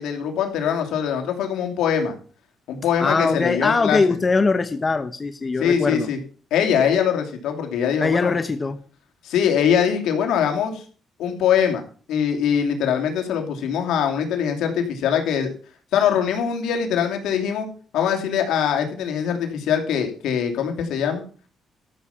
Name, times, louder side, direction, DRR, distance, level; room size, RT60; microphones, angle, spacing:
voice 1, 0.0-2.1 2.7-4.0 5.6-6.2 6.5-8.3 9.2-10.8 11.2-11.8 12.1-15.5 15.9-17.7 17.9-21.2, left 8 dB, 85° left, 4 dB, 2.7 m, -22 dB
voice 2, 3.0-6.1 8.0-8.8, left 4 dB, 30° left, 9 dB, 1.1 m, -21 dB
13.5 x 7.0 x 5.9 m, 0.40 s
cardioid pair, 90°, 0 cm